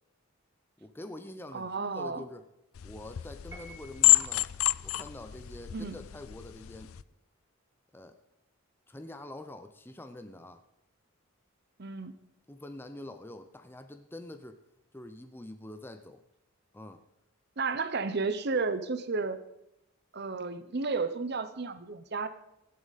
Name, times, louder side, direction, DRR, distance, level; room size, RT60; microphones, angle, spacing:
voice 1, 0.8-2.4 2.8-4.5 4.8-6.9 7.9-8.2 8.9-10.6 12.5-14.6 14.9-16.2 16.7-17.0, left 1 dB, 10° left, 8 dB, 0.6 m, -45 dB
voice 2, 1.5-2.2 5.7-6.0 11.8-12.1 17.6-19.4 20.1-22.3, right 4 dB, 50° right, 12 dB, 0.8 m, -32 dB
sound 1, 2.7-7.0, left 17 dB, 80° left, 0.4 m, -29 dB
Piano, 3.5-4.4, right 1 dB, 15° right, 2.4 m, -51 dB
16.0 x 11.0 x 4.1 m, 0.83 s
head